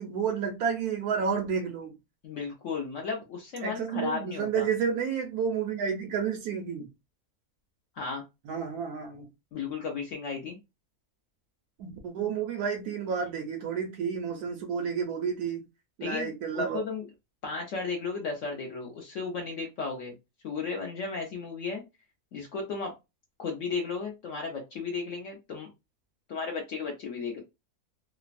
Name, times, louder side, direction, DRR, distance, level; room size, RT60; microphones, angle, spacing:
voice 1, 0.0-1.9 3.6-6.9 8.4-9.3 11.8-15.6 16.0-16.8, right 6 dB, 90° right, 1.1 m, -30 dB
voice 2, 2.2-4.7 8.0-8.2 9.5-10.6 16.0-17.0 17.4-20.1 20.4-21.8 22.3-23.0 23.4-25.7 26.3-27.4, left 4 dB, 65° left, 0.9 m, -34 dB
3.1 x 2.0 x 2.5 m
omnidirectional pair, 1.6 m